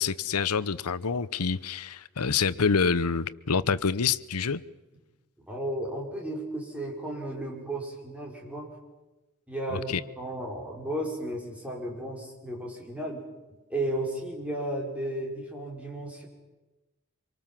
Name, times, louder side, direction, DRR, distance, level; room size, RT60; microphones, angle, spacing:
voice 1, 0.0-4.6 9.7-10.0, left 5 dB, 90° left, 0.8 m, -27 dB
voice 2, 5.4-8.7 9.5-13.3 13.7-16.3, right 1 dB, 5° right, 5.5 m, -34 dB
26.0 x 23.5 x 7.5 m
head